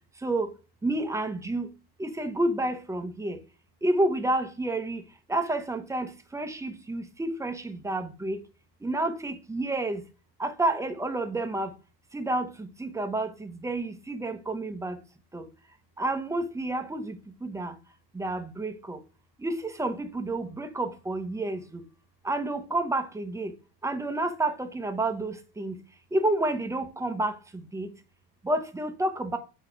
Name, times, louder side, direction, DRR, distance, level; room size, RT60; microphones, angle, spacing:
voice 1, 0.8-1.7 2.0-3.4 3.8-5.0 5.3-8.4 8.8-10.0 10.4-11.7 12.1-15.0 15.3-15.4 16.0-17.2 17.4-17.7 18.1-19.0 19.4-21.8 22.2-23.5 23.8-25.8 26.1-27.4 27.7-27.9 28.4-29.4, right 2 dB, 5° right, 0.9 m, -29 dB
8.2 x 3.1 x 5.0 m
supercardioid pair, 125°, 46 cm